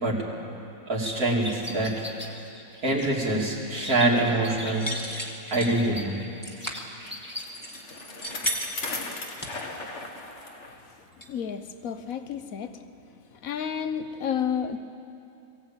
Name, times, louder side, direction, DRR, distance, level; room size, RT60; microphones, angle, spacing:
voice 1, 0.9-2.0 2.8-4.9 5.5-6.1, right 2 dB, 80° right, -3 dB, 3.5 m, -25 dB
sound 1, 1.0-7.4, left 2 dB, 5° right, 1.7 m, -40 dB
sound 2, 4.7-5.8 6.4-6.8 7.5-8.9 9.4-10.0 10.4-10.5 10.9-11.0 11.2-11.3, equal, 15° left, 1.9 m, -34 dB
Bicycle, 6.8-10.8 11.2-11.3 12.1-12.2, left 2 dB, 50° left, 2.1 m, -36 dB
voice 2, 11.3-12.8 13.4-14.8, left 8 dB, 70° left, 10 dB, 1.4 m, -31 dB
21.5 x 16.5 x 8.8 m, 2.7 s
omnidirectional pair, 1.5 m